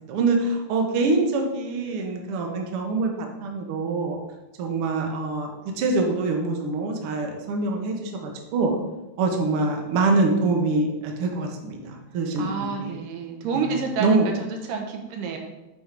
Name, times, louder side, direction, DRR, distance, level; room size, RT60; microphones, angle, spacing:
voice 1, 0.1-4.2 4.6-8.7 9.2-13.0 13.5-14.3, right 3 dB, 60° right, 2 dB, 1.5 m, -25 dB
voice 2, 12.4-15.4, right 5 dB, 75° right, 3 dB, 2.6 m, -29 dB
8.6 x 4.4 x 5.2 m, 1.0 s
omnidirectional pair, 4.0 m